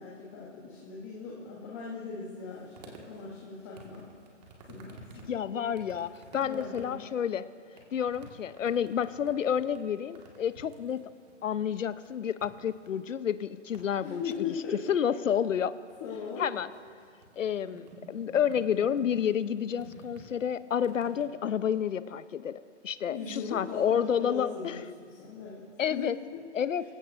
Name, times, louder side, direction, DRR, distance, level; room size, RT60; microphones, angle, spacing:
voice 1, 0.0-4.1 4.7-5.7 6.4-7.0 14.0-14.8 16.0-16.5 23.1-26.1 26.3-26.4, left 5 dB, 15° left, -4 dB, 0.9 m, -39 dB
sound 1, 2.5-21.3, right 2 dB, 30° right, 1.8 m, -53 dB
voice 2, 5.3-7.4 7.9-11.0 11.4-14.2 14.9-15.7 16.4-16.7 17.4-24.8 25.8-26.1 26.5-26.8, left 8 dB, 80° left, 15 dB, 0.8 m, -30 dB
25.5 x 15.5 x 2.6 m, 2.1 s
hypercardioid pair, 165°, 38 cm